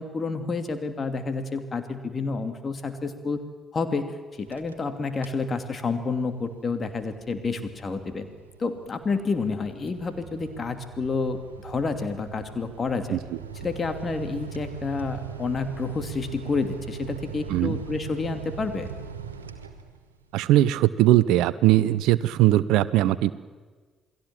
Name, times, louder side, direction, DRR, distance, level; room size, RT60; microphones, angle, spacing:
voice 1, 0.0-3.4 3.7-8.3 8.6-13.2 13.6-18.9, left 4 dB, 35° left, 8 dB, 2.7 m, -29 dB
sound 1, 4.3-4.9 5.2-5.5 5.9-20.2, right 6 dB, 80° right, 1.2 m, -40 dB
voice 2, 20.3-23.3, right 14 dB, 65° right, 18 dB, 0.6 m, -20 dB
28.0 x 20.0 x 7.5 m, 1.4 s
figure-of-eight pair, 45°, 0 cm